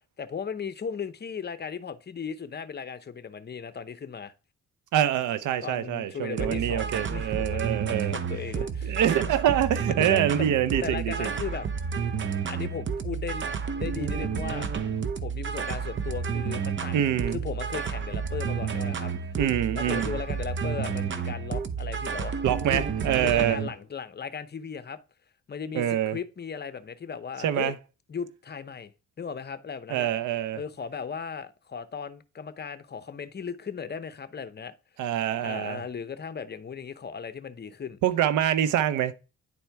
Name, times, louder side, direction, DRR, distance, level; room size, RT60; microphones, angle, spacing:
voice 1, 0.2-4.3 5.6-9.0 9.2-9.4 9.9-10.5 10.8-11.7 12.4-14.7 15.2-17.0 17.3-19.1 19.7-25.0 25.5-27.8 28.1-28.9 29.2-30.1 30.5-34.7 35.4-38.0, left 6 dB, 35° left, 0.8 m, -37 dB
voice 2, 4.9-8.2 8.8-11.3 16.9-17.4 19.4-20.2 22.4-23.6 25.7-26.2 27.4-27.7 29.9-30.6 35.0-35.8 38.0-39.1, right 11 dB, 80° right, 0.7 m, -25 dB
sound 1, 6.4-23.7, right 6 dB, 40° right, 0.8 m, -31 dB
9.9 x 4.4 x 3.4 m
cardioid pair, 90°, 30 cm